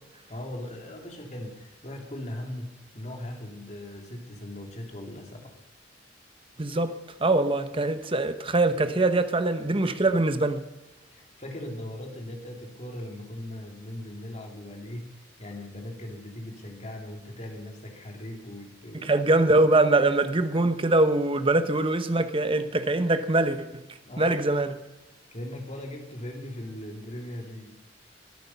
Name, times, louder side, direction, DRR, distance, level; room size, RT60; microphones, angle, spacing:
voice 1, 0.3-5.6 11.1-19.2 24.0-24.4 25.3-27.8, left 1 dB, 40° left, 2.8 m, -39 dB
voice 2, 6.6-10.7 19.0-23.8 24.2-24.7, right 2 dB, 30° right, 1.0 m, -23 dB
22.5 x 8.7 x 5.6 m
head